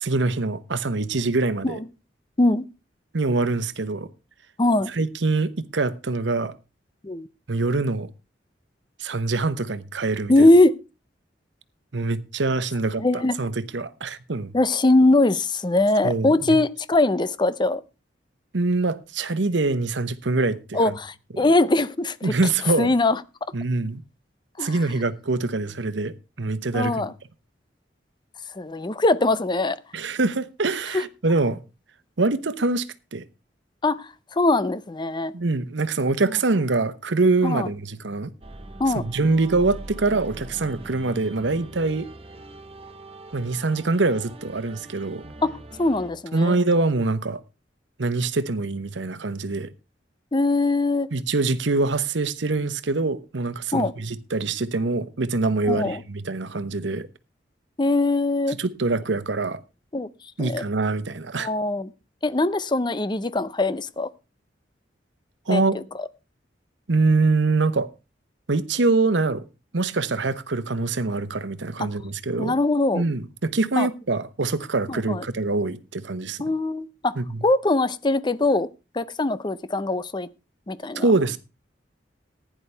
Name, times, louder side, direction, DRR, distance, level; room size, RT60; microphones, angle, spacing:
voice 1, 0.0-1.8 3.1-4.1 4.9-6.5 7.5-8.1 9.0-10.5 11.9-14.5 16.0-16.6 18.5-21.0 21.3-21.5 22.2-22.9 23.5-24.0 24.6-27.1 29.9-31.6 32.2-32.9 33.1-33.2 35.3-38.3 38.9-42.1 43.3-45.2 46.3-47.4 48.0-49.7 51.1-57.1 58.5-59.6 60.4-61.5 65.5-65.8 66.9-67.9 68.5-69.4 69.7-72.5 72.9-76.4 77.2-77.4 80.9-81.4, right 3 dB, 85° right, 1.0 m, -24 dB
voice 2, 4.6-4.9 7.0-7.3 10.3-10.8 13.0-13.3 14.5-17.8 20.7-22.3 22.8-23.2 24.6-24.8 26.7-27.1 28.5-29.8 30.9-31.0 33.8-35.3 37.4-37.7 38.8-39.0 45.4-46.6 50.3-51.1 53.7-53.9 55.7-56.0 57.8-58.6 59.9-60.1 60.4-60.6 61.4-61.9 62.2-64.1 65.5-65.6 71.8-71.9 72.4-73.0 73.8-73.9 74.9-75.2 76.4-77.1 77.4-78.7 78.9-80.3 80.7-81.0, left 2 dB, 25° left, 0.6 m, -21 dB
sound 1, 38.4-46.1, right 2 dB, 35° right, 1.2 m, -42 dB
15.5 x 10.0 x 3.4 m
head